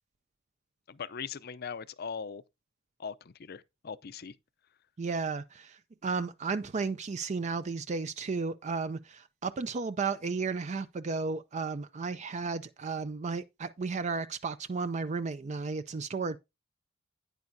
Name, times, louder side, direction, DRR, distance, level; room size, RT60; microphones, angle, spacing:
voice 1, 0.9-2.4 3.0-4.3, left 6 dB, 55° left, 0.5 m, -40 dB
voice 2, 5.0-16.4, right 4 dB, 35° right, 0.4 m, -34 dB
9.6 x 9.0 x 2.7 m
head